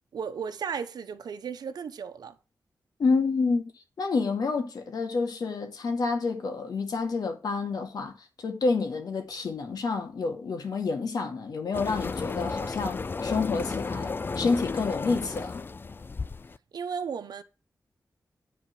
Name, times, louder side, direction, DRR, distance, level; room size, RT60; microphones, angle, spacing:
voice 1, 0.1-2.4 16.7-17.4, right 6 dB, 85° right, 1.0 m, -35 dB
voice 2, 3.0-3.6 4.0-8.1 8.4-15.7, left 4 dB, 75° left, 2.2 m, -28 dB
sound 1, 11.7-16.6, left 4 dB, 30° left, 0.4 m, -33 dB
9.9 x 4.5 x 7.5 m
wide cardioid pair, 95°, 7 cm